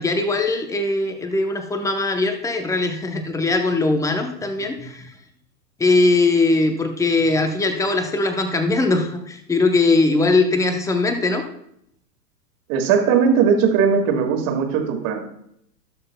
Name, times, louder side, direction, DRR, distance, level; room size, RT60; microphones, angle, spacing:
voice 1, 0.0-5.1 5.8-11.4, left 3 dB, 5° left, 6 dB, 0.7 m, -20 dB
voice 2, 12.7-15.2, right 6 dB, 40° right, 4 dB, 2.0 m, -19 dB
19.0 x 6.6 x 2.2 m, 0.73 s
hypercardioid pair, 115°, 50 cm